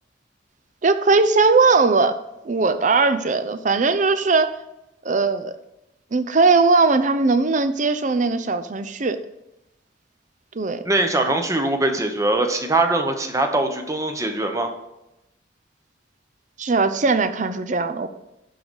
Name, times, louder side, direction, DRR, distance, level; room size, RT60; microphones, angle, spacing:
voice 1, 0.8-2.2 2.4-4.5 5.0-5.5 6.1-9.2 10.5-10.8 16.6-18.1, right 4 dB, 45° right, 11 dB, 0.6 m, -19 dB
voice 2, 10.8-14.7, right 2 dB, 20° right, 5 dB, 0.9 m, -22 dB
11.0 x 4.0 x 6.2 m, 0.90 s
head